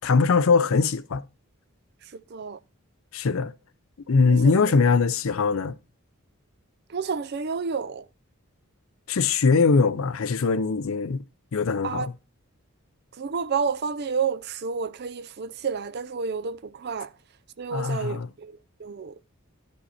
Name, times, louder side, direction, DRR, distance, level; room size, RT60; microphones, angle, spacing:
voice 1, 0.0-1.2 3.1-3.5 4.1-5.7 9.1-11.2 11.5-12.1 17.7-18.3, left 4 dB, 70° left, 0.5 m, -21 dB
voice 2, 2.1-2.6 4.3-4.5 6.9-8.1 11.8-12.1 13.2-17.1 17.6-19.1, right 5 dB, 50° right, 0.5 m, -30 dB
11.5 x 5.4 x 4.1 m
head